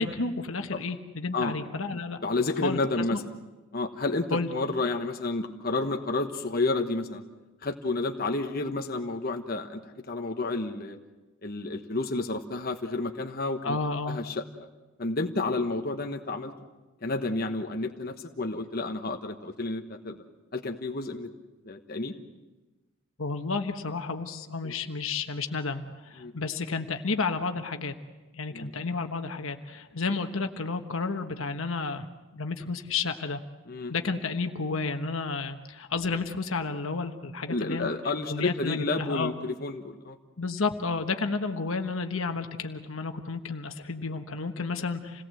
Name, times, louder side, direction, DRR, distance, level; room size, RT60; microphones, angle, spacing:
voice 1, 0.0-2.2 2.6-2.8 3.1-3.2 4.3-4.5 13.6-14.2 23.2-27.9 28.3-32.1 32.3-33.4 33.9-37.9 38.3-39.3 40.4-45.2, left 4 dB, 70° left, 6 dB, 1.3 m, -31 dB
voice 2, 2.2-3.3 3.7-7.2 7.6-9.8 10.1-11.0 11.4-13.8 14.0-14.4 15.0-16.5 17.0-20.2 20.5-21.3 21.6-22.2 24.6-24.7 26.2-26.3 28.5-28.7 33.7-33.9 37.5-40.2, left 2 dB, 45° left, 3 dB, 1.2 m, -30 dB
28.0 x 18.0 x 7.7 m, 1.2 s
head